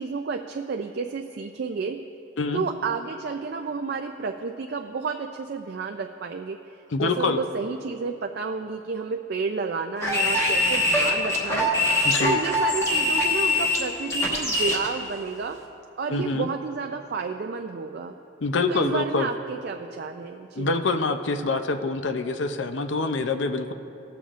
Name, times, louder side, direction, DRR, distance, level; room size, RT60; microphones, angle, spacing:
voice 1, 0.0-2.0 2.5-6.6 7.0-15.6 16.0-18.1 18.7-20.7, right 4 dB, 55° right, 4 dB, 0.4 m, -31 dB
voice 2, 6.9-7.4 12.0-12.4 16.1-16.5 18.4-19.3 20.6-23.7, left 3 dB, 70° left, 8 dB, 0.5 m, -25 dB
sound 1, 10.0-14.9, left 1 dB, 15° left, 1.3 m, -23 dB
20.0 x 7.1 x 2.5 m, 2.8 s
head